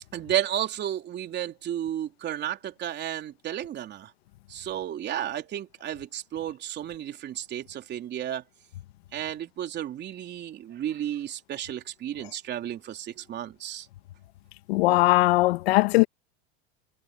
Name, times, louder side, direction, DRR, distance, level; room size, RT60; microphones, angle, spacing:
voice 1, 0.1-4.1 4.5-8.4 9.1-13.9, right 11 dB, 35° right, 3.4 m, -33 dB
voice 2, 14.7-16.1, left 19 dB, 75° left, 1.8 m, -20 dB
supercardioid pair, 130°, 31 cm